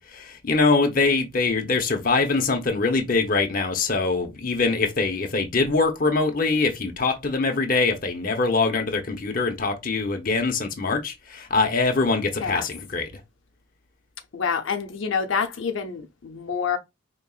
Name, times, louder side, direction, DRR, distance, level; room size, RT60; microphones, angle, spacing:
voice 1, 0.0-13.1, left 3 dB, 45° left, 0.8 m, -23 dB
voice 2, 12.3-12.7 14.3-16.8, left 6 dB, 85° left, 0.6 m, -27 dB
5.2 x 3.0 x 2.4 m
head